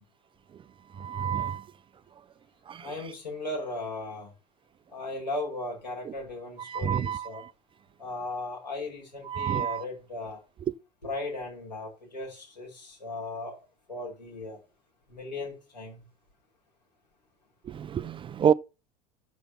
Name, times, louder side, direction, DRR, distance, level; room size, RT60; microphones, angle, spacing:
voice 1, 0.9-1.7 2.7-3.0 6.0-6.1 6.6-7.5 9.2-9.8 17.6-18.5, right 8 dB, 25° right, 0.4 m, -28 dB
voice 2, 2.8-4.3 4.9-7.4 8.0-10.4 11.0-13.6 13.9-14.6 15.1-16.0, left 2 dB, 90° left, 4.8 m, -37 dB
7.0 x 6.8 x 6.9 m
figure-of-eight pair, 75°, 21 cm